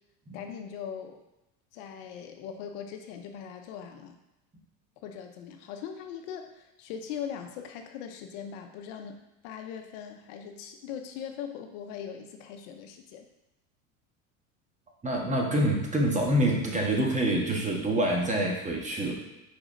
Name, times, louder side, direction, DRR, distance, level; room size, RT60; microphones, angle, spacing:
voice 1, 0.3-1.2 1.7-4.2 5.0-9.2 9.4-13.3, left 8 dB, 70° left, 5 dB, 0.8 m, -40 dB
voice 2, 15.0-19.1, right 1 dB, 20° right, 0 dB, 1.5 m, -26 dB
5.2 x 4.9 x 3.8 m, 0.94 s
hypercardioid pair, 90°, 38 cm